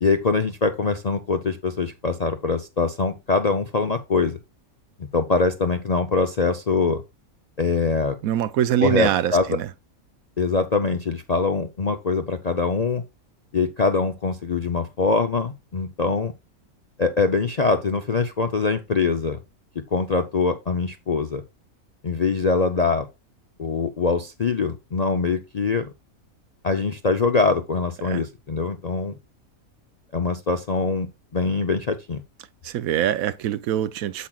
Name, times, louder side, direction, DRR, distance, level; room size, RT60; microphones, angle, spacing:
voice 1, 0.0-4.4 5.0-7.0 7.6-8.2 8.8-9.6 10.4-13.0 13.5-16.3 17.0-19.4 19.9-21.4 22.0-23.1 23.6-25.9 26.6-29.1 30.1-31.1 31.3-32.2, left 4 dB, 50° left, 0.5 m, -23 dB
voice 2, 8.2-9.7 28.0-28.2 32.6-34.3, right 11 dB, 80° right, 1.0 m, -24 dB
8.3 x 7.4 x 2.3 m
omnidirectional pair, 1.5 m